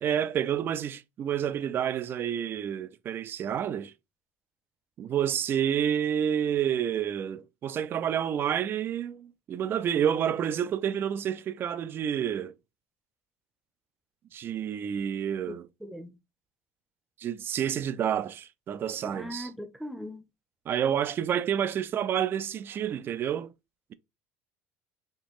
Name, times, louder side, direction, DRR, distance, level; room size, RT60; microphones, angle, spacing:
voice 1, 0.0-3.9 5.0-12.5 14.3-15.7 17.2-19.5 20.7-23.5, right 9 dB, 35° right, 0.4 m, -29 dB
voice 2, 15.8-16.2 19.0-20.2, equal, ahead, 0.7 m, -39 dB
4.3 x 2.9 x 3.0 m
supercardioid pair, 110°, 6 cm